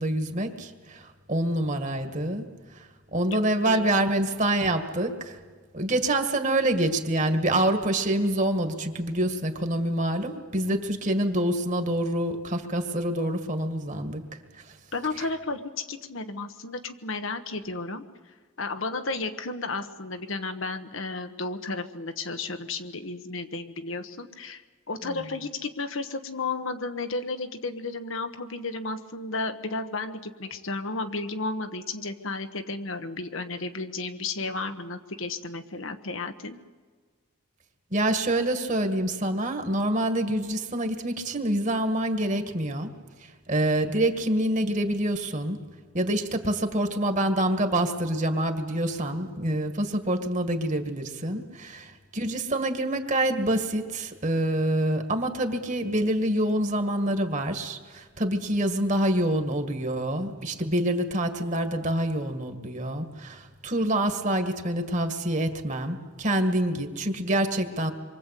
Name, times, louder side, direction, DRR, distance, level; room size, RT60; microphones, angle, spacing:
voice 1, 0.0-2.5 2.8-5.4 5.7-14.2 37.9-42.9 43.5-45.6 45.9-67.9, right 1 dB, 35° right, 6 dB, 2.0 m, -26 dB
voice 2, 3.3-4.0 10.7-10.8 14.9-18.0 18.6-24.6 24.9-36.6, left 3 dB, 65° left, 7 dB, 1.3 m, -33 dB
26.5 x 23.5 x 8.4 m, 1.5 s
head